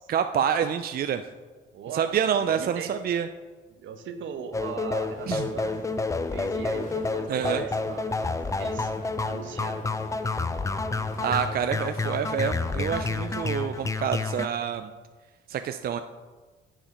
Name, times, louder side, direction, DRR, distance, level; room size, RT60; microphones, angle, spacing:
voice 1, 0.1-1.2 1.9-3.3 5.3-5.5 7.3-7.6 11.2-14.9 15.5-16.0, right 8 dB, 50° right, 9 dB, 0.5 m, -27 dB
voice 2, 1.7-2.1 2.4-2.9 3.7-5.7 6.3-8.1 8.5-8.9 9.2-9.8, right 7 dB, 75° right, 7 dB, 1.1 m, -38 dB
sound 1, 4.5-14.5, left 3 dB, 15° left, 0.5 m, -29 dB
sound 2, 5.0-13.9, left 1 dB, 40° left, 2.4 m, -46 dB
10.0 x 7.4 x 4.3 m, 1.4 s
cardioid pair, 90°, 20 cm